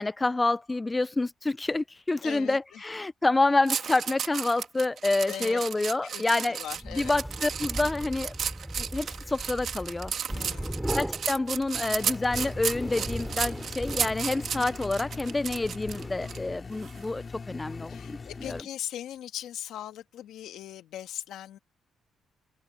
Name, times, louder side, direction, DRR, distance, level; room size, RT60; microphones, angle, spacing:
voice 1, 0.0-6.6 6.9-8.3 8.8-10.1 10.9-18.6, left 2 dB, 20° left, 0.3 m, -28 dB
voice 2, 2.2-2.8 5.3-5.6 6.0-7.1 10.3-10.9 17.9-21.6, left 11 dB, 80° left, 1.9 m, -40 dB
sound 1, 3.7-16.4 16.8-17.0, right 8 dB, 60° right, 2.4 m, -33 dB
sound 2, 6.7-16.7, right 1 dB, 5° right, 3.5 m, -38 dB
sound 3, 11.7-18.6, left 4 dB, 35° left, 3.9 m, -41 dB
cardioid pair, 90°, 0 cm